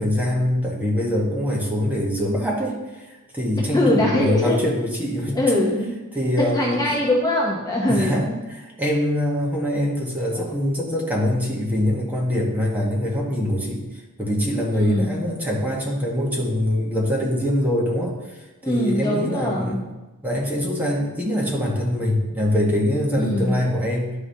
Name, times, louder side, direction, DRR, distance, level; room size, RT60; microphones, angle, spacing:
voice 1, 0.0-2.8 3.3-5.6 6.1-6.8 7.9-13.8 14.2-18.1 18.7-19.8 20.2-24.1, left 1 dB, 10° right, -3 dB, 1.2 m, -23 dB
voice 2, 3.7-4.6 5.3-6.0 6.4-8.4 14.7-15.2 18.6-19.8 23.2-23.6, left 1 dB, 15° left, -3 dB, 0.8 m, -22 dB
10.5 x 4.8 x 2.7 m, 1.1 s
head